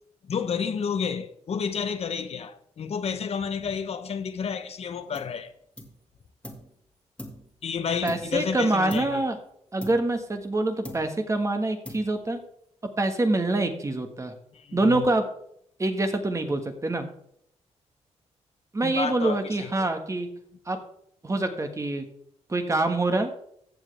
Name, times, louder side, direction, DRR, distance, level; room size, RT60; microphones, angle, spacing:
voice 1, 0.2-5.5 7.6-9.2 14.5-15.1 18.8-19.8, left 6 dB, 60° left, 0.9 m, -30 dB
sound 1, 5.1-5.4 5.8-6.7 7.2-8.5 8.9-9.3 9.8-10.6 10.8-11.4 11.8-12.4, left 1 dB, 10° left, 1.9 m, -43 dB
voice 2, 8.0-9.4 9.7-12.4 13.0-14.3 14.7-15.2 15.8-17.1 18.7-20.3 20.7-20.8 21.2-22.0 22.5-23.3, right 2 dB, 25° right, 1.4 m, -25 dB
14.5 x 7.4 x 3.3 m
cardioid pair, 95°, 12 cm